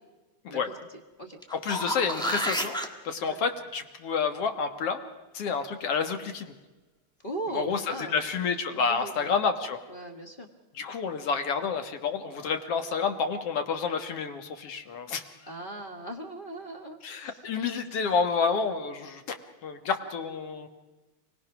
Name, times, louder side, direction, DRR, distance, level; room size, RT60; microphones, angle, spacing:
sound 1, 1.4-2.9 7.7-7.8, equal, 5° left, 0.7 m, -30 dB
voice 1, 1.5-2.8 3.0-5.0 5.3-6.5 7.5-9.8 10.8-15.2 17.0-19.4 19.6-20.7, left 5 dB, 55° left, 7 dB, 2.1 m, -29 dB
voice 2, 7.2-8.2 8.9-9.3 9.9-10.5 15.5-17.4, right 2 dB, 30° left, 4 dB, 1.0 m, -39 dB
28.0 x 19.0 x 6.1 m, 1.2 s
omnidirectional pair, 3.5 m